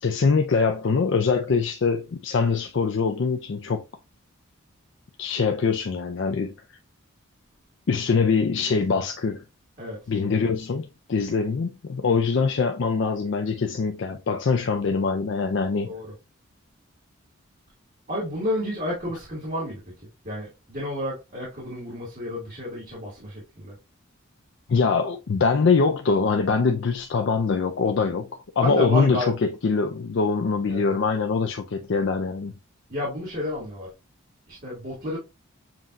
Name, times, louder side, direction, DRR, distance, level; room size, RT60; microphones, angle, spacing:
voice 1, 0.0-3.8 5.2-6.5 7.9-9.4 10.1-15.9 24.7-28.3 28.6-32.6, left 5 dB, 60° left, 0.4 m, -23 dB
voice 2, 18.1-19.8 20.2-23.7 28.6-29.3 30.7-31.0 32.9-33.9 34.5-35.2, left 1 dB, 40° right, 1.9 m, -31 dB
7.3 x 2.6 x 2.4 m
head